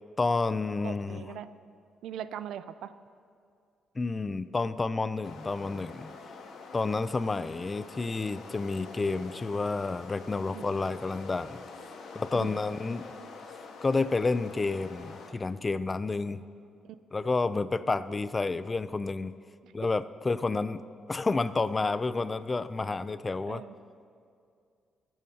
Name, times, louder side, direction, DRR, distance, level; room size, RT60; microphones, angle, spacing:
voice 1, 0.2-1.2 4.0-6.1 6.7-11.6 12.1-13.0 13.8-16.4 17.1-19.4 19.7-20.8 21.1-23.6, left 3 dB, 20° left, 14 dB, 0.4 m, -30 dB
voice 2, 0.8-1.5 2.0-2.9 10.5-10.8 12.3-12.6 16.8-17.0 19.6-19.7 23.5-23.7, right 10 dB, 85° right, 14 dB, 0.4 m, -41 dB
sound 1, 5.2-15.3, left 4 dB, 80° left, 1.4 m, -46 dB
22.0 x 10.5 x 2.8 m, 2.3 s
cardioid pair, 130°, 0 cm